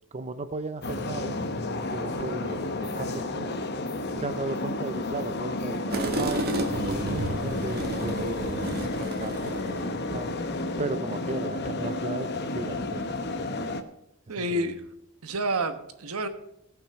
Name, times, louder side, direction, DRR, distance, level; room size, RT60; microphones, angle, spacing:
voice 1, 0.1-1.4 1.9-3.5 4.1-6.4 6.7-8.6 9.0-10.4 10.8-12.3 12.5-13.0 13.5-13.7 14.4-14.8, right 3 dB, 30° right, 9 dB, 0.5 m, -35 dB
sound 1, 0.8-13.8, left 2 dB, 50° left, 0.9 m, -31 dB
sound 2, 5.9-10.0, right 1 dB, 45° right, 1.4 m, -32 dB
voice 2, 14.3-14.8 15.2-16.3, right 1 dB, 80° right, 9 dB, 1.1 m, -29 dB
17.5 x 6.0 x 5.6 m, 0.79 s
head